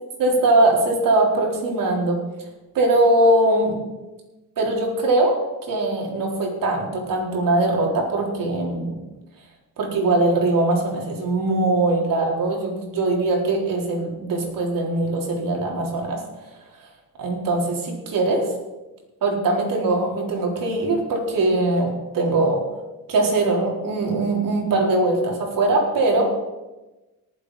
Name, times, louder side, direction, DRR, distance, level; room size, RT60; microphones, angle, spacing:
voice 1, 0.2-2.2 2.7-3.8 4.6-5.4 5.7-9.0 9.8-16.2 17.2-18.5 19.2-22.6 23.1-26.3, right 2 dB, 60° right, -1 dB, 4.2 m, -21 dB
18.5 x 7.7 x 5.1 m, 1.1 s
cardioid pair, 95°, 37 cm